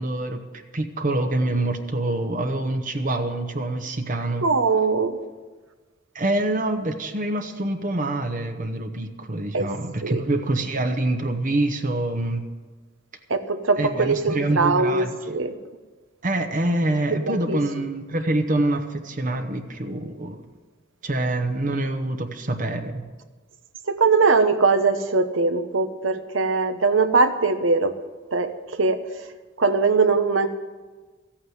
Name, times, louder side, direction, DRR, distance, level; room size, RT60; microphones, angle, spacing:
voice 1, 0.0-4.5 6.1-12.4 13.8-15.4 16.2-20.5 21.0-23.0, right 2 dB, 40° right, 6 dB, 1.0 m, -26 dB
voice 2, 4.4-5.2 9.5-9.7 10.0-10.2 13.3-15.5 17.3-17.6 23.9-27.9 28.3-29.0 29.6-30.5, right 4 dB, 75° right, 9 dB, 1.0 m, -21 dB
15.0 x 8.7 x 8.0 m, 1.3 s
head